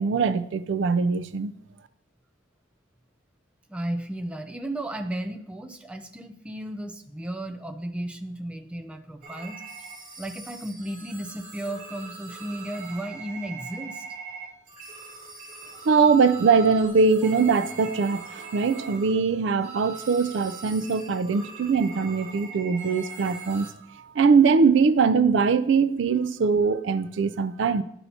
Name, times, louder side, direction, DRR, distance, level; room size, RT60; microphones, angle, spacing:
voice 1, 0.0-1.5 15.9-23.7 24.0-27.8, right 5 dB, 70° right, 0.4 m, -22 dB
voice 2, 3.7-9.6 10.2-14.0 17.2-17.3, right 1 dB, 5° right, 0.4 m, -34 dB
sound 1, 9.2-23.7, right 4 dB, 40° right, 2.5 m, -42 dB
11.0 x 5.5 x 2.8 m
head